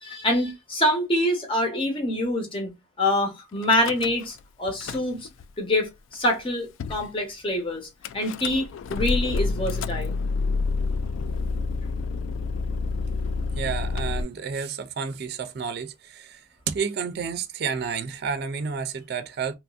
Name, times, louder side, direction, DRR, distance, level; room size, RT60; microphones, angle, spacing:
voice 1, 0.0-5.3 5.6-7.9 8.1-10.2, left 1 dB, 25° left, 1.0 m, -25 dB
Car / Engine starting / Idling, 3.6-4.4 4.7-5.5 6.1-6.2 6.4-6.5 6.8-7.1 8.0-14.2, left 4 dB, 75° left, 0.3 m, -28 dB
voice 2, 13.5-19.5, right 6 dB, 55° right, 0.4 m, -30 dB
2.9 x 2.5 x 2.4 m
head